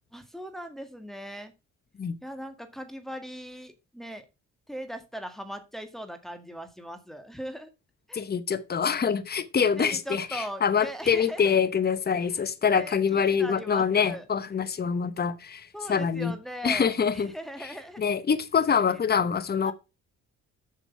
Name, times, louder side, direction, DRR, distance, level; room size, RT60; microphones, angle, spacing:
voice 1, 0.1-1.5 2.2-4.2 4.7-7.7 8.1-8.2 9.8-11.5 12.2-14.2 15.7-18.0 18.9-19.0 19.6-19.7, equal, ahead, 1.9 m, -39 dB
voice 2, 8.1-16.3 16.6-17.3 18.0-19.7, left 6 dB, 30° left, 1.0 m, -25 dB
7.4 x 6.6 x 5.7 m
cardioid pair, 90°, 30 cm